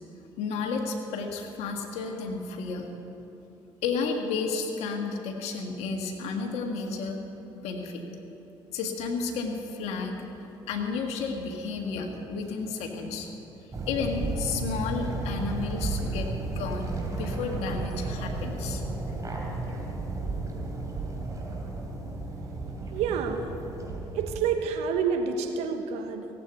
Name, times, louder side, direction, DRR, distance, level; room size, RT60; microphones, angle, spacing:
voice 1, 0.4-2.9 3.8-7.2 7.5-8.0 8.7-13.3 13.9-18.8 19.8-19.9, left 4 dB, 75° left, 3 dB, 1.7 m, -32 dB
Swan Waddle Gravel to Grass to Swim, 13.7-24.4, right 3 dB, 30° right, 3.6 m, -33 dB
voice 2, 22.9-23.5 24.1-26.3, right 6 dB, 75° right, 6 dB, 1.3 m, -28 dB
17.0 x 8.5 x 8.3 m, 3.0 s
hypercardioid pair, 60°, 11 cm